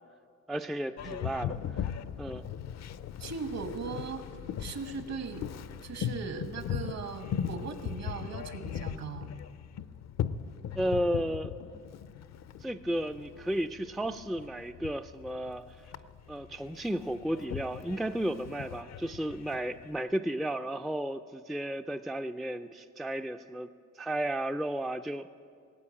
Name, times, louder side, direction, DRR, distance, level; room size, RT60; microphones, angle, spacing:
voice 1, 0.5-1.9 2.2-2.4 10.8-11.6 12.6-15.6 16.3-23.7 24.0-25.3, right 1 dB, ahead, 8 dB, 0.3 m, -33 dB
Boat Water vehicle, 1.0-20.0, left 9 dB, 60° left, 0.6 m, -39 dB
voice 2, 3.2-4.2 4.6-5.5 5.8-9.3, right 5 dB, 60° right, 8 dB, 1.4 m, -38 dB
18.5 x 8.3 x 8.6 m, 2.2 s
cardioid pair, 90°, 30 cm